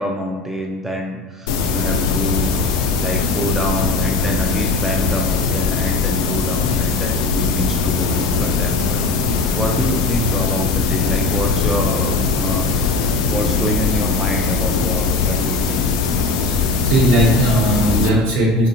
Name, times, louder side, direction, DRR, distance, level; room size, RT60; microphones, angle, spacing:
voice 1, 0.0-13.0 13.3-15.8, right 1 dB, 5° right, 0 dB, 0.4 m, -27 dB
sound 1, 1.5-18.1, left 5 dB, 70° left, 0.3 m, -20 dB
voice 2, 16.5-18.7, right 1 dB, 65° right, -4 dB, 1.2 m, -17 dB
4.0 x 2.5 x 2.8 m, 1.3 s
hypercardioid pair, 70°, 4 cm